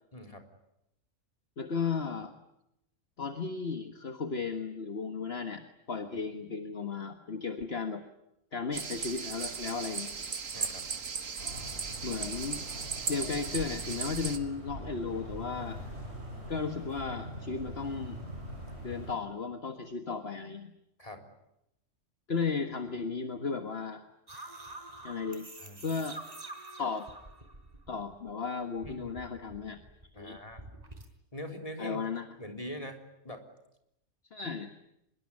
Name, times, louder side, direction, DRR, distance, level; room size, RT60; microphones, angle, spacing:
voice 1, 0.1-0.5 10.5-10.9 21.0-21.3 25.6-25.8 28.8-29.1 30.1-30.7 31.3-32.0 32.4-33.4 34.4-34.8, equal, 25° left, 4 dB, 3.8 m, -43 dB
voice 2, 1.6-2.3 3.2-8.0 8.5-10.1 12.0-12.6 13.1-15.8 16.5-18.2 18.8-20.7 22.3-24.0 25.0-25.5 25.8-26.2 26.8-27.1 27.9-29.8 30.1-30.4 31.8-32.3 34.3-34.7, left 5 dB, 50° left, 7 dB, 1.8 m, -35 dB
sound 1, 8.7-14.4, right 5 dB, 80° right, 2.0 m, -37 dB
sound 2, 11.4-19.1, equal, 55° right, 6.7 m, -43 dB
sound 3, 24.3-28.3 28.6-31.1, right 2 dB, 30° right, 4.4 m, -47 dB
25.5 x 22.0 x 9.7 m, 0.83 s
omnidirectional pair, 1.3 m